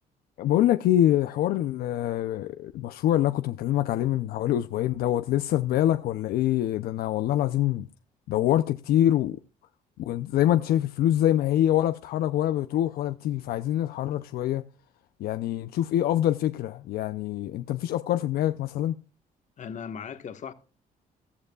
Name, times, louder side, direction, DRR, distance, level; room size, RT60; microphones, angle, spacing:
voice 1, 0.4-7.9 8.3-9.4 10.0-14.6 15.2-18.9, left 12 dB, 80° left, 0.6 m, -25 dB
voice 2, 19.6-20.5, left 7 dB, 50° left, 1.5 m, -37 dB
14.5 x 13.5 x 2.4 m
cardioid pair, 110°, 16 cm